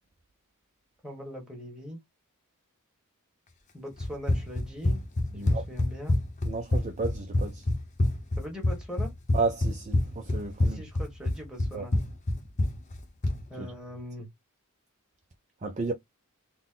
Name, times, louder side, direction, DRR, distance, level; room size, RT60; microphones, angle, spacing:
voice 1, 1.0-2.0 3.7-5.0 5.3-6.2 8.4-9.1 10.6-12.0 13.5-14.3, equal, 5° right, 1.3 m, -41 dB
Run, 4.0-13.4, left 1 dB, 30° left, 0.7 m, -27 dB
voice 2, 6.5-7.6 9.3-10.8 11.7-11.8 13.6-13.7 15.6-15.9, right 3 dB, 30° right, 0.4 m, -32 dB
4.0 x 2.1 x 3.6 m
head